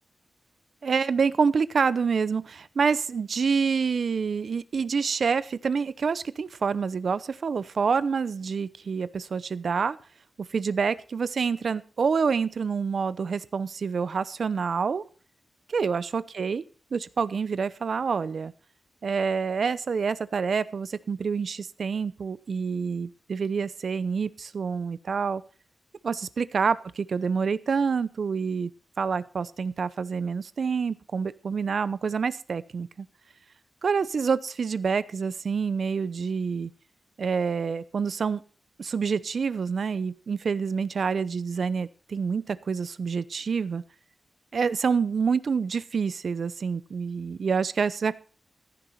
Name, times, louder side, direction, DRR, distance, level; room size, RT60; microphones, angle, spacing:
voice 1, 0.8-10.0 10.5-15.0 15.7-16.6 16.9-18.5 19.0-25.4 26.0-28.7 29.0-33.1 33.8-36.7 37.2-38.4 38.8-43.8 44.5-48.1, right 5 dB, 60° right, 16 dB, 0.8 m, -27 dB
14.5 x 10.5 x 4.3 m, 0.38 s
wide cardioid pair, 135°, 0 cm